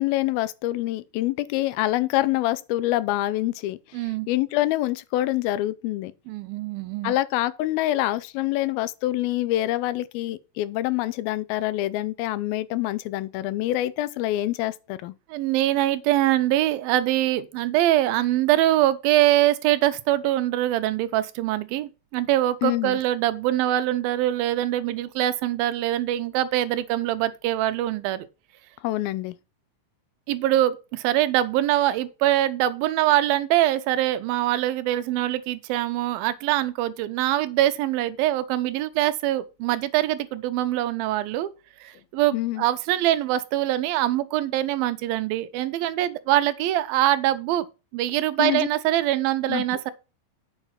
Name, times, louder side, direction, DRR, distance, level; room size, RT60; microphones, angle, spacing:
voice 1, 0.0-3.8 4.3-6.1 7.0-15.1 22.6-23.0 28.8-29.4 42.3-42.6 48.4-48.7 49.5-49.6, left 15 dB, 85° left, 2.5 m, -26 dB
voice 2, 3.9-4.3 6.3-7.1 15.3-28.3 30.3-41.5 41.8-47.7 47.9-49.9, right 14 dB, 80° right, 2.5 m, -23 dB
8.7 x 5.8 x 5.7 m
omnidirectional pair, 4.2 m